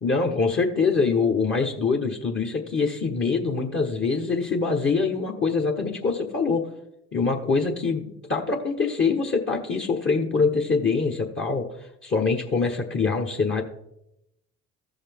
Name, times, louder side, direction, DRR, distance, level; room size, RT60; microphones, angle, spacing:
voice 1, 0.0-6.6 7.1-13.6, left 4 dB, 35° left, 1 dB, 1.3 m, -24 dB
15.0 x 5.5 x 3.6 m, 0.82 s
hypercardioid pair, 55°, 34 cm